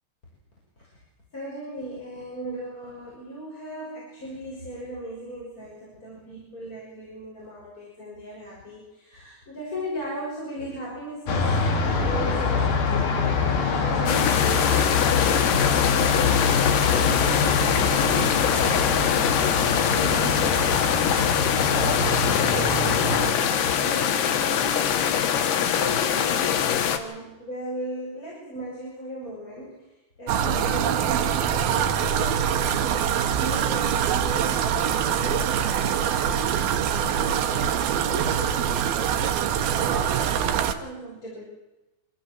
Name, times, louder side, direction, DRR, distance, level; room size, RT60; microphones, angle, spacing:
voice 1, 1.3-21.4 21.9-24.9 25.7-32.2 33.3-39.3 39.8-41.4, equal, 20° left, -5 dB, 6.8 m, -38 dB
sound 1, 11.3-23.3, left 4 dB, 60° left, 4.4 m, -24 dB
sound 2, 14.1-27.0, left 9 dB, 75° left, 3.6 m, -23 dB
sound 3, 30.3-40.7, right 8 dB, 70° right, 3.0 m, -24 dB
26.0 x 16.0 x 7.7 m, 0.99 s
omnidirectional pair, 4.8 m